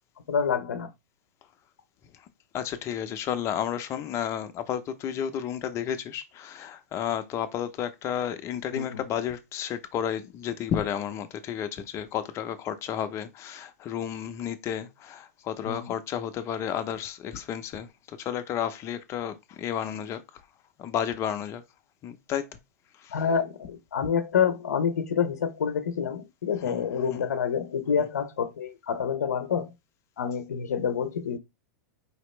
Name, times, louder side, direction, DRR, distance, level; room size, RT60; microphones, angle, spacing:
voice 1, 0.3-0.9 8.7-9.0 15.6-15.9 23.1-29.7 30.2-31.4, left 7 dB, 85° left, 0.9 m, -27 dB
voice 2, 2.5-20.2 20.8-21.6 22.0-22.6 23.0-23.2 26.7-26.8 27.1-27.3 28.0-28.1, left 9 dB, 35° left, 0.8 m, -32 dB
5.0 x 3.0 x 3.2 m
hypercardioid pair, 120°, 9 cm